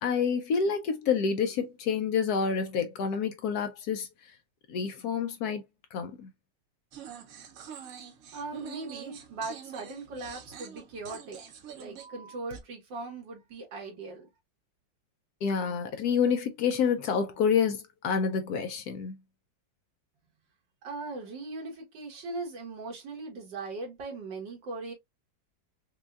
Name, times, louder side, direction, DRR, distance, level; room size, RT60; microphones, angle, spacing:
voice 1, 0.0-4.1 4.7-5.6 5.9-6.3 15.4-19.2, left 6 dB, 70° left, 1.0 m, -28 dB
sound 1, 6.9-12.6, right 7 dB, 60° right, 1.0 m, -45 dB
voice 2, 8.3-14.3 20.8-24.9, right 3 dB, 85° right, 2.1 m, -39 dB
5.3 x 2.2 x 2.2 m
omnidirectional pair, 1.9 m